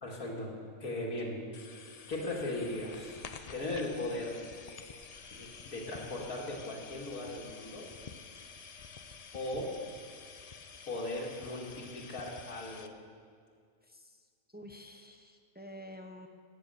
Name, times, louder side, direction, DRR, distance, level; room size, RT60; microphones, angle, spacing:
voice 1, 0.0-0.5 0.8-1.4 2.1-3.2 3.5-4.4 5.3-7.9 9.3-9.7 10.9-12.9, left 2 dB, 80° left, -3 dB, 2.3 m, -38 dB
sound 1, 1.5-12.9, left 5 dB, 55° left, 0.4 m, -50 dB
voice 2, 13.8-16.3, equal, 10° right, 5 dB, 0.5 m, -50 dB
14.5 x 9.6 x 6.6 m, 2.1 s
omnidirectional pair, 1.5 m